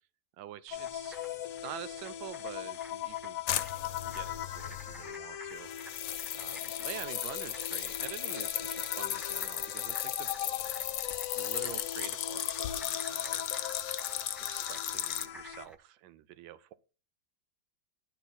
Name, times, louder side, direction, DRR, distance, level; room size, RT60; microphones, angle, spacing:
voice 1, 0.4-1.2 1.6-3.4 4.0-10.3 11.4-13.7 14.5-16.7, right 12 dB, 85° right, 1.4 m, -47 dB
sound 1, 0.7-15.7, left 11 dB, 60° left, 1.0 m, -41 dB
sound 2, 0.7-15.8, equal, ahead, 0.7 m, -53 dB
sound 3, 3.5-5.1 5.6-15.3, left 12 dB, 85° left, 1.4 m, -36 dB
11.5 x 4.4 x 4.0 m
omnidirectional pair, 2.0 m